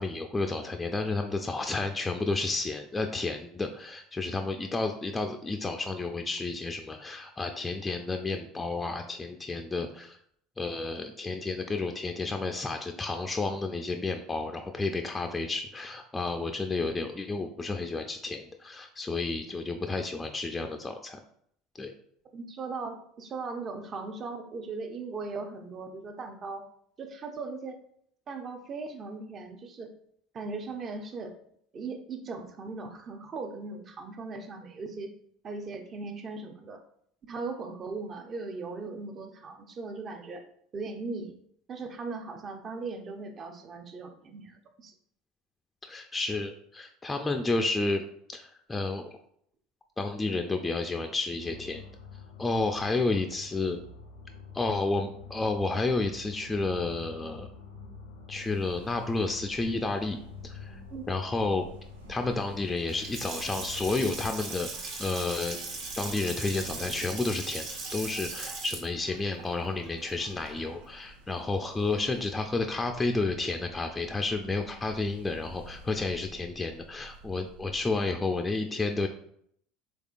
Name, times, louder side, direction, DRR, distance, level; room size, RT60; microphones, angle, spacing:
voice 1, 0.0-10.2 10.6-21.2 21.8-21.9 45.8-48.0 48.3-49.0 50.0-51.8 52.4-53.8 54.5-57.5 58.3-60.2 60.4-60.8 61.1-61.6 62.1-64.7 65.0-65.6 66.0-79.1, left 3 dB, 15° left, 4 dB, 0.3 m, -31 dB
voice 2, 22.3-26.7 27.0-27.8 28.3-29.9 30.3-31.4 31.7-35.1 35.4-36.8 37.2-40.4 40.7-41.4 41.7-44.9 60.9-61.0, right 4 dB, 40° right, 6 dB, 0.6 m, -38 dB
sound 1, 51.4-64.3, left 4 dB, 85° left, 0.5 m, -47 dB
sound 2, 58.3-78.1, right 2 dB, 85° right, 0.4 m, -52 dB
Water tap faucet / Sink (filling or washing) / Splash splatter, 62.8-70.9, right 3 dB, 65° right, 0.8 m, -39 dB
3.5 x 3.2 x 2.4 m, 0.67 s
hypercardioid pair, 80°, 0 cm